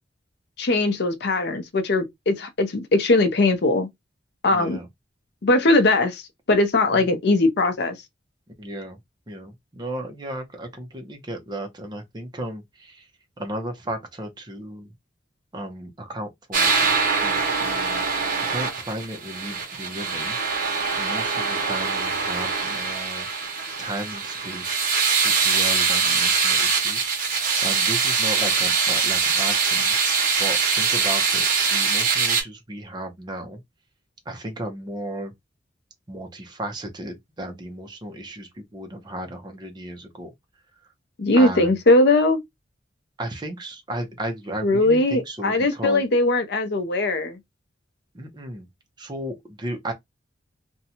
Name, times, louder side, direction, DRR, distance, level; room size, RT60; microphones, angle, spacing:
voice 1, 0.6-3.9 4.4-4.8 5.4-6.2 6.5-8.0 41.2-42.4 44.6-47.4, left 2 dB, 65° left, 0.6 m, -20 dB
voice 2, 4.5-4.9 6.9-7.2 8.6-9.0 9.3-13.1 13.4-14.9 15.5-18.1 18.5-20.4 21.0-23.3 23.8-24.8 25.2-27.1 27.6-29.9 30.4-33.6 34.3-35.3 36.1-40.3 41.3-41.8 43.2-46.0 48.1-48.7 49.0-49.9, right 1 dB, 25° right, 0.7 m, -34 dB
sound 1, 16.5-32.4, right 5 dB, 50° right, 1.0 m, -23 dB
2.6 x 2.2 x 2.8 m
head